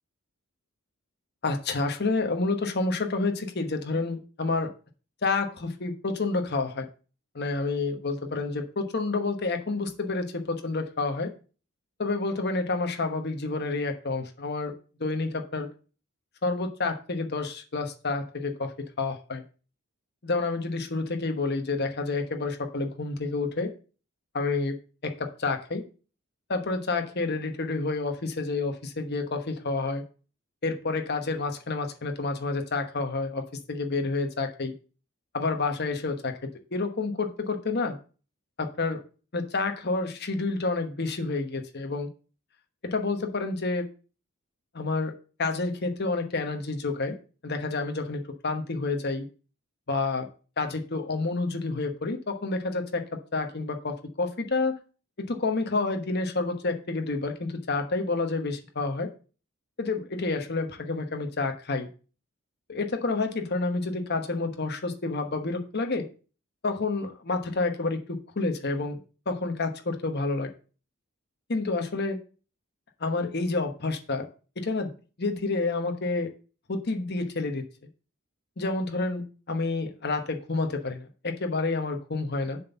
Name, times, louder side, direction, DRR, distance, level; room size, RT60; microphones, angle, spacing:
voice 1, 1.4-4.7 5.2-6.9 7.3-11.3 12.0-14.7 15.0-15.7 16.4-18.7 19.0-19.4 20.2-23.7 24.3-24.7 25.0-25.8 26.5-30.0 30.6-33.4 33.7-34.7 35.3-36.3 36.7-38.0 38.6-39.0 39.3-42.1 42.8-43.9 44.7-45.1 45.4-47.2 47.4-49.3 49.9-50.3 50.6-53.0 53.3-54.8 55.2-59.1 59.8-61.9 62.7-66.1 66.6-69.0 69.3-70.5 71.5-72.2 73.0-74.2 74.6-74.9 75.2-76.3 76.7-77.6 78.6-82.6, left 3 dB, 50° left, 5 dB, 1.1 m, -29 dB
7.3 x 4.3 x 6.9 m, 0.37 s
head